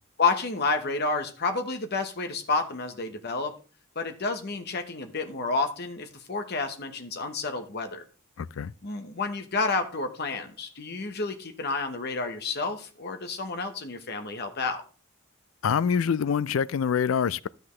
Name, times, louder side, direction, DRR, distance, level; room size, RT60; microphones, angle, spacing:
voice 1, 0.2-3.5 3.9-8.0 8.8-14.8, left 4 dB, 55° left, 1.2 m, -30 dB
voice 2, 8.4-8.7 15.6-17.5, left 7 dB, 70° left, 0.4 m, -25 dB
12.5 x 7.8 x 3.2 m
head